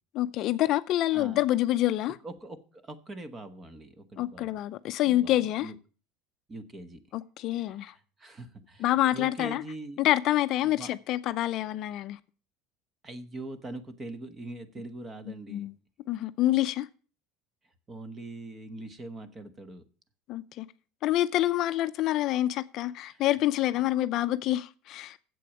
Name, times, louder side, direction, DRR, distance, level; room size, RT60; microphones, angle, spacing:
voice 1, 0.1-2.2 4.2-5.7 7.1-7.9 8.8-9.6 10.0-12.2 15.5-15.7 16.1-16.9 20.3-20.7 21.0-25.2, left 14 dB, 50° left, 0.5 m, -27 dB
voice 2, 2.2-4.5 5.0-5.8 6.5-7.0 7.6-10.0 10.6-10.9 13.0-15.7 17.9-19.8 23.1-23.2 23.7-23.9, right 2 dB, 20° right, 1.2 m, -42 dB
8.3 x 7.7 x 7.1 m
supercardioid pair, 135°, 0 cm